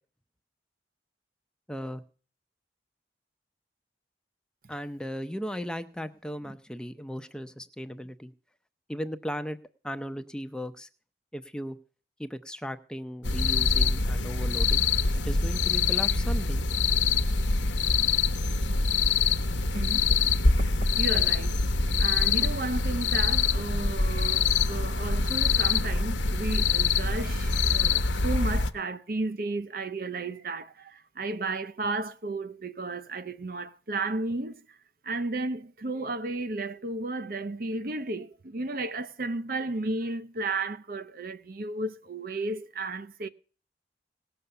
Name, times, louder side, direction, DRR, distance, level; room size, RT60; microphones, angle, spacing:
voice 1, 1.7-2.0 4.7-8.3 8.9-9.6 9.8-10.9 11.3-11.8 12.2-14.8 15.2-16.6, equal, 5° left, 0.6 m, -36 dB
sound 1, 13.2-28.7, left 4 dB, 90° left, 1.0 m, -25 dB
voice 2, 19.7-21.6 22.0-34.8 35.0-43.3, right 2 dB, 50° right, 0.7 m, -33 dB
18.0 x 6.9 x 6.9 m
head